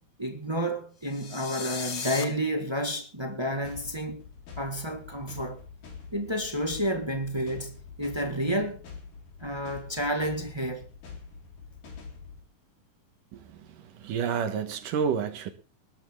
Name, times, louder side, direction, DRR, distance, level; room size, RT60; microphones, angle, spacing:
voice 1, 0.2-4.2 4.6-5.6 6.1-8.8 9.4-10.9, equal, 40° right, 0.3 m, -30 dB
sound 1, 1.1-2.2, left 6 dB, 40° left, 1.8 m, -36 dB
sound 2, 3.6-12.4, left 5 dB, 70° left, 5.4 m, -46 dB
voice 2, 14.0-15.5, right 7 dB, 70° right, 2.9 m, -29 dB
20.5 x 12.5 x 3.7 m
omnidirectional pair, 4.0 m